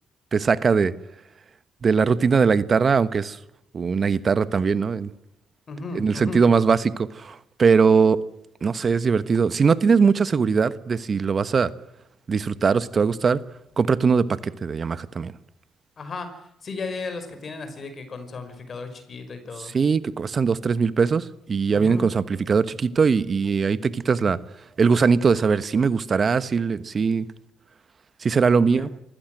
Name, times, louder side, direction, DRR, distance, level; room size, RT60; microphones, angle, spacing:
voice 1, 0.3-0.9 1.8-3.4 3.7-5.1 5.9-8.2 8.6-11.7 12.3-13.4 13.8-15.3 19.7-24.4 24.8-27.3 28.2-28.9, right 5 dB, 45° right, 1.2 m, -21 dB
voice 2, 5.7-6.4 16.0-19.7 21.7-22.1 28.8-28.9, left 3 dB, 50° left, 5.3 m, -35 dB
27.5 x 15.5 x 7.9 m
supercardioid pair, 55°, 0 cm